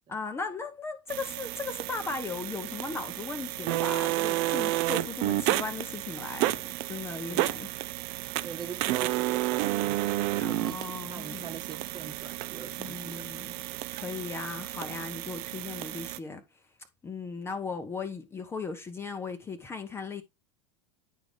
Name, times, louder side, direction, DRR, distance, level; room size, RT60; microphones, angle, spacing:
voice 1, 0.1-7.7 10.4-11.5 12.8-13.5 13.9-16.4 17.0-20.2, left 4 dB, 15° left, 0.8 m, -37 dB
sound 1, 1.1-16.2, right 16 dB, 40° right, 0.5 m, -31 dB
voice 2, 8.4-10.1 10.4-13.4, right 7 dB, 25° right, 1.2 m, -43 dB
10.0 x 4.9 x 3.3 m
figure-of-eight pair, 85°, 16 cm